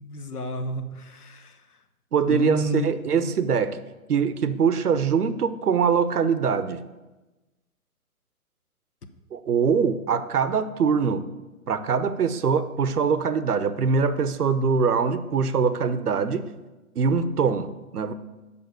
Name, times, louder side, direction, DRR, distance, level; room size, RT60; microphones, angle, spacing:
voice 1, 0.0-1.5 2.3-2.9 3.2-3.3, equal, 90° left, 1.0 m, -30 dB
voice 2, 2.1-3.8 4.1-6.8 9.3-11.3 11.7-16.5 17.0-18.1, right 6 dB, 90° right, 0.7 m, -23 dB
6.9 x 5.2 x 6.7 m
hypercardioid pair, 135°, 44 cm